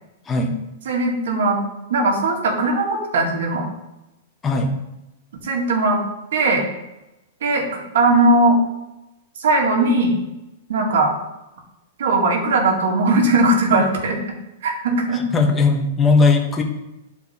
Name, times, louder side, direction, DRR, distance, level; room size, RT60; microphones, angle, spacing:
voice 1, 0.9-1.6 1.9-3.7 5.4-6.0 6.3-6.6 7.4-8.6 9.4-10.2 10.7-11.1 12.0-14.2 14.6-15.2, right 2 dB, 75° right, 0 dB, 2.0 m, -19 dB
voice 2, 15.1-16.6, left 3 dB, 15° left, 1 dB, 1.3 m, -18 dB
10.5 x 4.5 x 4.3 m, 0.96 s
hypercardioid pair, 135°, 0 cm